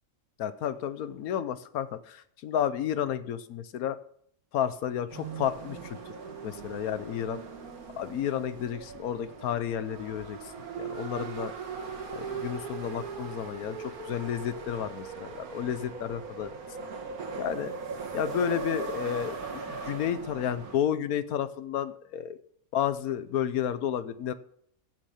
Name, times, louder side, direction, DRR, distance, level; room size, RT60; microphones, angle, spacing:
voice 1, 0.4-4.0 4.5-6.0 6.4-7.4 7.9-10.4 10.7-11.5 12.1-16.5 17.3-17.7 18.1-22.4 22.7-24.3, left 9 dB, 80° left, 14 dB, 1.3 m, -31 dB
sound 1, 5.1-20.8, right 5 dB, 80° right, 1.9 m, -39 dB
15.0 x 6.4 x 5.7 m, 0.64 s
omnidirectional pair, 1.5 m